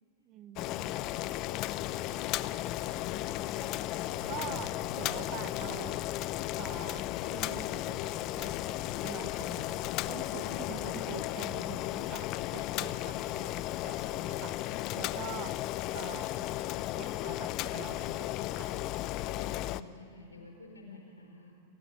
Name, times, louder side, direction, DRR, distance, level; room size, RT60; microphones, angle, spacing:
voice 1, 0.2-1.0 3.6-3.8 4.3-6.0 6.6-8.8 9.0-9.8 10.1-14.6 15.0-15.6 15.9-16.5 16.9-18.7, right 11 dB, 35° right, 15 dB, 1.0 m, -46 dB
Boiling, 0.6-19.8, left 15 dB, 40° left, 0.6 m, -35 dB
sound 1, 3.2-12.2 12.6-12.7, right 5 dB, 85° right, 1.6 m, -57 dB
voice 2, 10.3-11.2 19.2-21.6, left 2 dB, 80° left, 1 dB, 4.3 m, -50 dB
29.5 x 15.0 x 9.5 m, 2.4 s
figure-of-eight pair, 90°, 0 cm